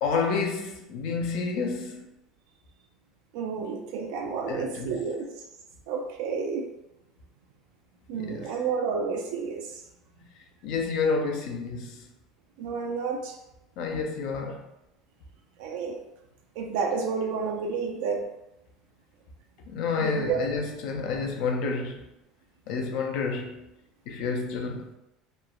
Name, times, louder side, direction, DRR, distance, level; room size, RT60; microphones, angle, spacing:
voice 1, 0.0-2.1 4.5-5.0 8.1-8.5 10.4-12.1 13.8-14.7 19.7-22.1 22.7-23.7 24.1-24.9, left 4 dB, 70° left, 0.4 m, -30 dB
voice 2, 3.3-5.3 5.9-6.7 8.1-9.8 12.6-13.4 15.6-16.0 16.6-18.2 20.0-20.4, right 5 dB, 75° right, 0.4 m, -30 dB
3.0 x 2.0 x 2.3 m
supercardioid pair, 105°, 0 cm